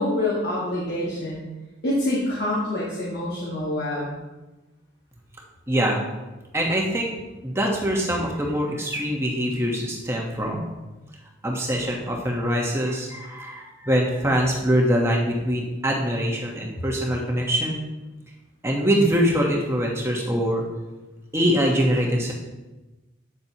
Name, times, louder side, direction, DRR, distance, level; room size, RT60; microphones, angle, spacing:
voice 1, 0.0-1.4 1.8-4.1, left 1 dB, 50° left, -7 dB, 1.6 m, -26 dB
voice 2, 5.7-6.0 6.5-7.1 7.4-10.7 11.4-17.8 18.6-20.6 21.3-22.3, equal, 15° right, -1 dB, 1.1 m, -23 dB
8.5 x 7.6 x 2.9 m, 1.1 s
head